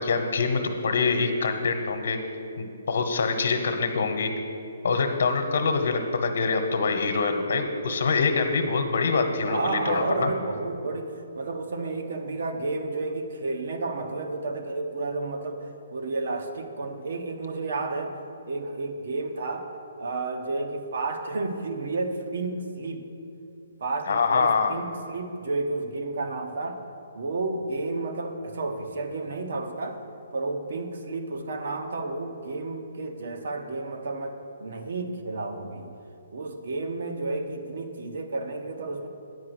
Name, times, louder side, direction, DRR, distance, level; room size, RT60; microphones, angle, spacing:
voice 1, 0.0-2.2 2.6-4.3 4.8-10.3 24.1-24.8, left 4 dB, 65° left, 4 dB, 1.1 m, -25 dB
voice 2, 9.5-18.1 18.5-19.7 20.0-23.1 23.8-26.8 27.1-30.0 30.3-35.9 36.3-39.1, right 3 dB, 60° right, 5 dB, 0.9 m, -31 dB
9.6 x 4.9 x 8.0 m, 2.7 s
hypercardioid pair, 175°, 0 cm